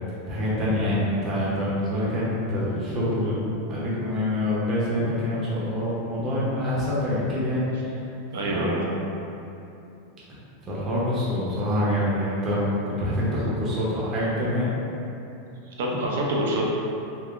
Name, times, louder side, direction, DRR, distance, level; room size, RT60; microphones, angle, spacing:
voice 1, 0.3-8.0 8.5-8.9 10.6-14.7, left 1 dB, 30° right, -8 dB, 0.7 m, -26 dB
voice 2, 8.3-9.0 15.8-16.7, right 1 dB, 75° right, -2 dB, 0.5 m, -26 dB
3.6 x 2.1 x 2.4 m, 2.8 s
supercardioid pair, 135°, 0 cm